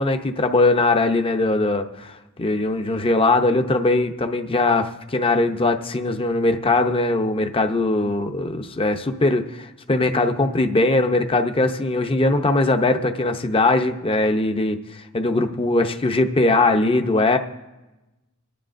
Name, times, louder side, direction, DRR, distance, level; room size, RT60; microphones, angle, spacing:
voice 1, 0.0-2.1 2.4-14.8 15.1-17.4, left 2 dB, 25° left, 7 dB, 0.7 m, -20 dB
24.5 x 9.9 x 2.6 m, 1.1 s
head